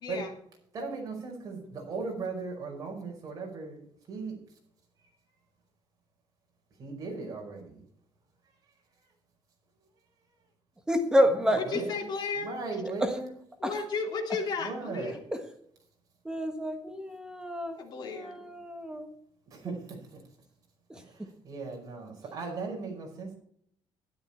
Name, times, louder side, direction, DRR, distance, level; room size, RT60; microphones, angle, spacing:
voice 1, 0.0-0.3 1.6-1.7 11.7-12.5 13.6-15.2 17.7-18.4, left 4 dB, 50° left, 2 dB, 2.9 m, -34 dB
voice 2, 0.7-3.8 4.1-4.4 6.8-7.8 11.4-12.0 12.4-13.3 14.6-15.1 19.5-20.2 21.0-23.3, right 4 dB, 40° right, 0 dB, 5.2 m, -37 dB
voice 3, 10.9-11.6 13.0-13.1 13.6-13.7 16.2-19.1 20.9-21.0, equal, 10° right, 5 dB, 1.4 m, -28 dB
12.5 x 12.0 x 4.4 m, 0.67 s
cardioid pair, 160°, 9 cm